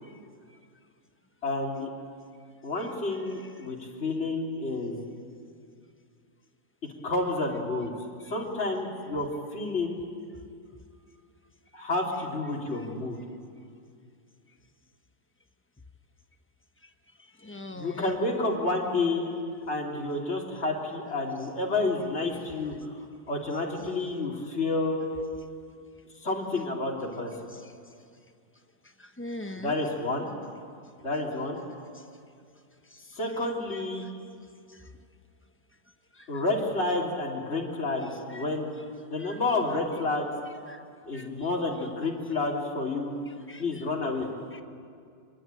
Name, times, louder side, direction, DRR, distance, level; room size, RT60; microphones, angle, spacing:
voice 1, 1.4-1.9 2.6-5.1 6.8-7.9 8.3-10.0 11.7-13.2 17.7-19.3 19.7-23.0 23.3-25.1 26.2-27.3 29.6-30.3 31.0-31.6 33.2-34.1 36.3-38.8 39.1-40.3 41.1-43.1 43.6-44.3, left 2 dB, 40° left, -2 dB, 3.5 m, -30 dB
voice 2, 17.4-18.2 27.5-27.7 29.0-29.9 31.9-32.0 32.9-33.2 34.7-34.9 36.1-36.4 38.3-38.4 39.2-39.4 40.7-40.8 41.1-41.5 43.3-43.8 44.5-44.6, left 1 dB, 10° left, 6 dB, 0.9 m, -43 dB
25.0 x 21.5 x 9.1 m, 2.3 s
omnidirectional pair, 1.8 m